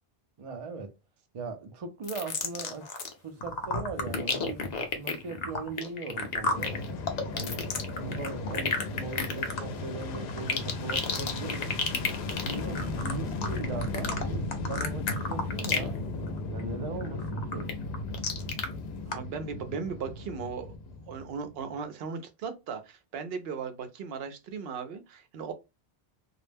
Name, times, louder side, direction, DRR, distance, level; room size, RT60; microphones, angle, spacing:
voice 1, 0.4-0.9 1.3-3.0 3.2-4.7 4.9-6.8 7.3-7.7 7.9-11.8 12.4-16.0 16.5-17.7, right 4 dB, 45° right, 0.5 m, -39 dB
sound 1, 2.0-3.1 3.4-16.0 16.3-16.6 17.0-18.7 19.1-19.2, left 4 dB, 50° left, 0.6 m, -32 dB
Fixed-wing aircraft airplane, 6.5-21.7, left 2 dB, 80° left, 0.8 m, -36 dB
voice 2, 19.1-20.7 21.1-25.5, right 5 dB, 75° right, 0.8 m, -37 dB
2.3 x 2.1 x 3.2 m
omnidirectional pair, 1.0 m